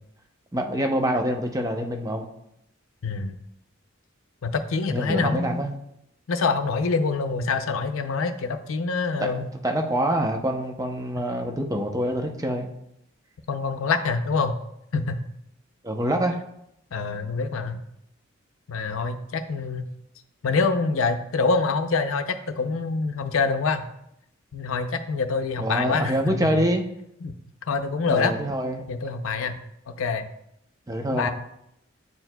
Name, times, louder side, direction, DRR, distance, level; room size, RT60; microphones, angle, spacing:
voice 1, 0.5-2.3 4.9-5.7 9.2-9.3 9.6-12.7 15.8-16.4 25.6-26.8 28.1-28.8 30.9-31.3, right 1 dB, 15° right, 3 dB, 0.6 m, -25 dB
voice 2, 3.0-3.3 4.4-5.6 6.3-9.5 13.5-14.5 14.9-15.2 16.9-17.8 18.7-19.8 20.4-23.9 24.5-26.6 27.2-27.3 27.7-28.3 28.9-29.6 29.9-30.3 31.1-31.3, left 4 dB, 80° left, 8 dB, 0.5 m, -25 dB
9.5 x 4.6 x 2.2 m, 0.79 s
head